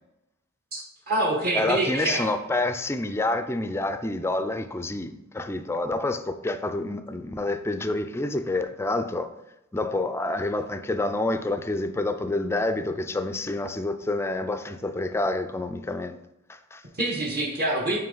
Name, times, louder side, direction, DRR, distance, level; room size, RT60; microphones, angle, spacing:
voice 1, 0.7-2.3 16.9-18.0, right 2 dB, 45° right, 1.1 m, -26 dB
voice 2, 1.5-9.3 9.7-16.2 16.5-16.8, left 2 dB, 10° left, 0.3 m, -28 dB
9.0 x 3.1 x 3.8 m
head